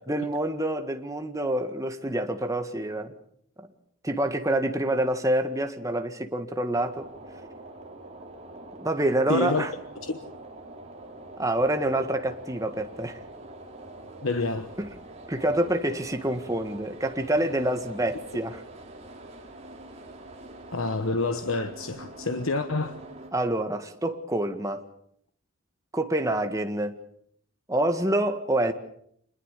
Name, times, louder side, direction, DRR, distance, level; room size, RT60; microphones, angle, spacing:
voice 1, 0.1-3.1 3.6-3.7 4.0-7.1 8.8-9.7 11.4-13.2 14.8-14.9 15.3-18.6 23.3-24.8 25.9-27.0 27.7-28.7, right 1 dB, 15° right, 1.8 m, -27 dB
sound 1, 6.7-23.3, right 2 dB, 30° right, 4.0 m, -45 dB
voice 2, 9.3-9.7 10.0-10.2 14.2-14.7 20.7-23.0, left 3 dB, 85° left, 1.2 m, -28 dB
27.0 x 21.0 x 6.7 m
head